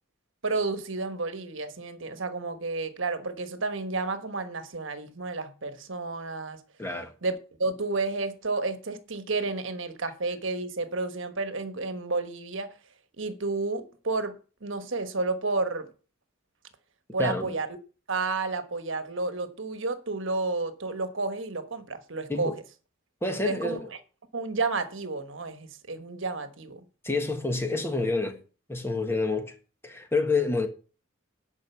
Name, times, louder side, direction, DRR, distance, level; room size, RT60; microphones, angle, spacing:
voice 1, 0.4-6.6 7.2-12.7 13.2-15.9 17.1-17.7 18.1-22.5 23.4-23.8 24.3-26.8, right 3 dB, 65° right, 1.3 m, -31 dB
voice 2, 6.8-7.1 17.2-17.6 22.3-22.6 23.2-23.9 27.0-28.4 28.7-29.6 29.8-30.7, left 3 dB, 10° left, 1.5 m, -28 dB
10.5 x 5.3 x 7.0 m
head